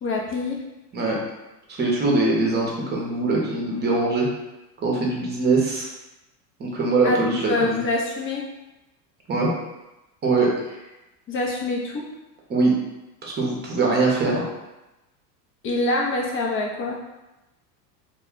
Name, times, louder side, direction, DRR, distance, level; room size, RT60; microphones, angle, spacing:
voice 1, 0.0-0.6 7.0-8.4 11.3-12.0 15.6-17.0, left 2 dB, 25° left, -1 dB, 0.6 m, -25 dB
voice 2, 1.7-4.3 4.8-5.8 6.6-7.8 9.3-9.5 10.2-10.5 12.5-12.7 13.2-14.5, right 3 dB, 20° right, -2 dB, 0.8 m, -22 dB
2.3 x 2.2 x 3.6 m, 1.0 s
hypercardioid pair, 105°, 48 cm